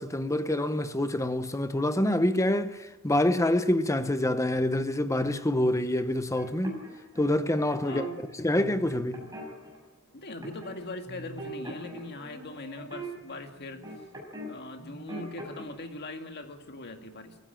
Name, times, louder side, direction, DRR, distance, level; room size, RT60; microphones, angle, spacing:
voice 1, 0.0-6.8 7.2-8.0 8.4-9.2, left 1 dB, 15° left, 0.9 m, -26 dB
sound 1, 6.3-8.1 8.5-9.8 10.4-10.8 11.0-14.5 14.8-15.6, right 1 dB, 15° right, 6.8 m, -41 dB
voice 2, 7.8-8.2 9.2-9.3 10.1-13.8 14.5-17.4, left 2 dB, 50° left, 2.0 m, -41 dB
24.0 x 15.0 x 9.0 m
head